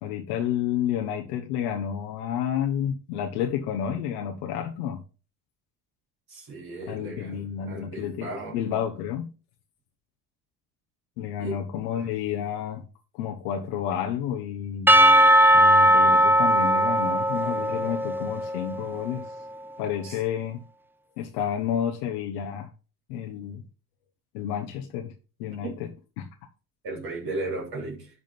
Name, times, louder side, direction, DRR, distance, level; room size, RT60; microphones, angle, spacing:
voice 1, 0.0-5.0 6.9-9.3 11.2-12.8 13.1-15.0 15.5-19.3 19.8-20.6 21.2-22.7 23.1-23.6 24.3-25.1 25.4-25.9 26.2-26.3, left 9 dB, 80° left, 1.1 m, -30 dB
voice 2, 6.3-8.6 11.4-11.6 20.0-20.2 26.8-28.1, right 2 dB, 55° right, 3.7 m, -35 dB
Percussion / Church bell, 14.9-19.2, right 1 dB, 5° right, 0.6 m, -19 dB
11.0 x 3.8 x 5.8 m
hypercardioid pair, 70°, 44 cm